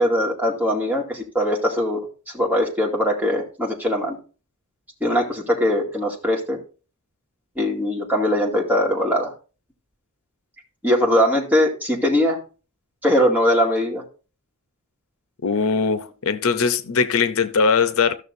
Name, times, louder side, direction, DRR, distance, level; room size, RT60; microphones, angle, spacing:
voice 1, 0.0-2.1 2.3-4.2 5.0-6.6 7.6-9.3 10.8-12.4 13.0-14.0, equal, 10° right, 2.3 m, -21 dB
voice 2, 15.4-18.1, left 5 dB, 75° left, 0.7 m, -20 dB
14.5 x 6.5 x 2.6 m
head